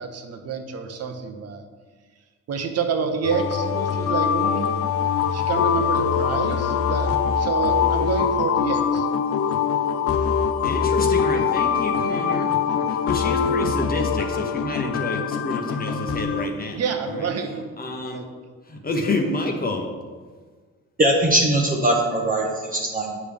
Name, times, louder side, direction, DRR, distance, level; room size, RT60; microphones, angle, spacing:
voice 1, 0.0-1.6 2.5-4.7 5.3-9.1 16.7-17.6 18.0-18.3, right 5 dB, 55° right, 6 dB, 0.9 m, -28 dB
sound 1, 3.2-16.5, left 7 dB, 50° left, 0.5 m, -23 dB
voice 2, 10.6-16.8 17.8-18.2 18.7-19.9, left 2 dB, 30° left, 2 dB, 1.0 m, -28 dB
voice 3, 21.0-23.2, right 1 dB, 30° right, -2 dB, 0.9 m, -21 dB
8.5 x 4.9 x 3.5 m, 1.5 s
cardioid pair, 90°, 30 cm